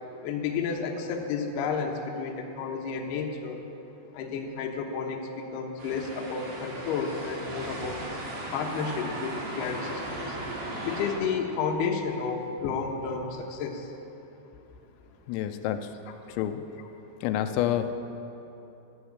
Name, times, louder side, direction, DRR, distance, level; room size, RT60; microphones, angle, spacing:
voice 1, 0.2-3.6 4.1-8.1 8.5-10.4 10.8-13.9 16.1-16.2, left 5 dB, 70° left, 1 dB, 2.8 m, -31 dB
sound 1, 5.8-11.1, right 2 dB, 60° right, 4.8 m, -37 dB
voice 2, 15.3-15.9 16.3-16.7 17.2-17.9, left 11 dB, 90° left, 8 dB, 3.3 m, -28 dB
12.5 x 11.5 x 8.6 m, 2.9 s
omnidirectional pair, 5.9 m